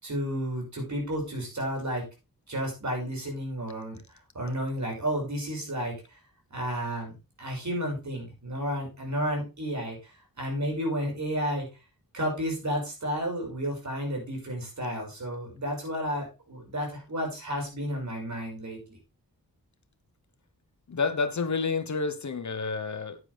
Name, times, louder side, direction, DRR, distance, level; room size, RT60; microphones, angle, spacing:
voice 1, 0.0-2.0 2.5-4.0 4.3-5.9 6.5-7.1 7.4-11.7 12.1-19.0, equal, 50° right, 5.9 m, -32 dB
voice 2, 20.9-23.2, left 4 dB, 50° left, 1.1 m, -29 dB
9.8 x 9.7 x 3.4 m
wide cardioid pair, 105°, 36 cm